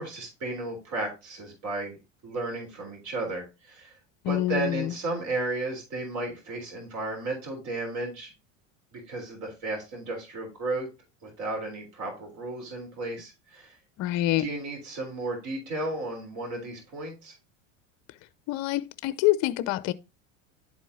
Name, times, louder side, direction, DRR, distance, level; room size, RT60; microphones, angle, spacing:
voice 1, 0.0-2.0 2.2-3.9 4.3-8.3 8.9-10.9 11.2-13.8 14.4-17.4, right 2 dB, 50° right, 3.7 m, -34 dB
voice 2, 4.2-4.9 14.0-14.5 18.5-19.9, left 15 dB, 45° left, 0.5 m, -26 dB
11.0 x 4.5 x 2.7 m
hypercardioid pair, 95°, 37 cm